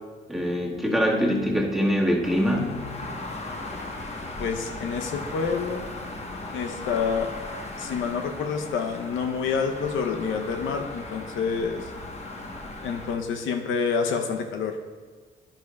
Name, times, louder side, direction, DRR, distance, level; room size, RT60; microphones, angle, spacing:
voice 1, 0.3-2.8, equal, ahead, -2 dB, 1.6 m, -23 dB
sound 1, 2.2-13.2, left 2 dB, 35° left, 1.1 m, -37 dB
voice 2, 4.4-5.9 6.5-7.3 7.8-11.9 12.8-14.8, left 5 dB, 80° left, 4 dB, 0.7 m, -28 dB
10.5 x 10.0 x 2.3 m, 1.5 s
cardioid pair, 90°, 20 cm